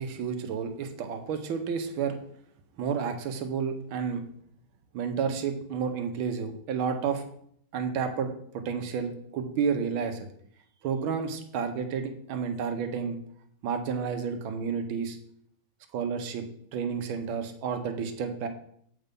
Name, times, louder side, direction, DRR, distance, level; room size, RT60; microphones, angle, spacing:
voice 1, 0.0-2.2 2.8-4.2 4.9-7.2 7.7-10.3 10.8-13.2 13.6-15.2 15.9-16.4 16.7-18.5, right 6 dB, 75° right, 7 dB, 1.6 m, -31 dB
7.9 x 4.4 x 5.2 m, 0.66 s
omnidirectional pair, 2.4 m